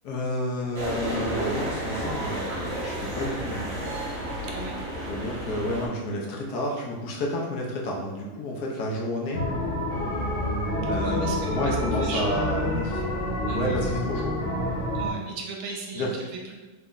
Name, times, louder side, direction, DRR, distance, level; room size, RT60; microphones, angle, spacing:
voice 1, 0.0-3.8 5.1-9.4 10.9-13.0 13.6-14.3 15.9-16.1, left 1 dB, 80° left, -2 dB, 1.3 m, -30 dB
sound 1, 0.7-5.9, right 1 dB, 60° right, 1.1 m, -31 dB
voice 2, 4.4-4.8 10.8-12.7 13.5-13.8 14.9-16.6, right 4 dB, 80° right, 0 dB, 1.1 m, -37 dB
sound 2, 9.3-15.1, left 1 dB, 50° left, 0.8 m, -28 dB
3.4 x 2.1 x 3.7 m, 1.2 s
omnidirectional pair, 1.7 m